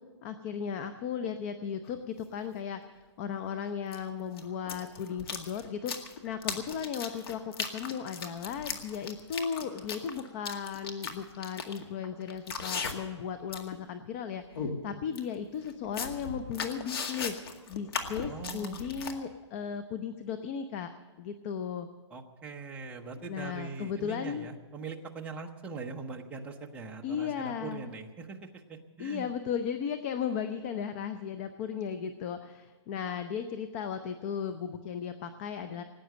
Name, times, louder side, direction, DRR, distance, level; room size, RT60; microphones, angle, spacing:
voice 1, 0.2-17.3 17.7-20.9 21.2-21.9 23.3-24.5 27.0-27.9 29.0-35.8, left 7 dB, 30° left, 10 dB, 0.6 m, -36 dB
sound 1, 1.9-2.0 3.9-4.0 4.3-13.2 13.5-13.8 14.1-14.2 14.6-14.7 15.2-15.3 15.7-19.1, left 5 dB, 55° left, 2.0 m, -37 dB
voice 2, 18.2-18.8 22.1-29.3, right 4 dB, 10° right, 1 dB, 0.9 m, -42 dB
19.0 x 9.2 x 7.7 m, 1.4 s
hypercardioid pair, 160°, 15 cm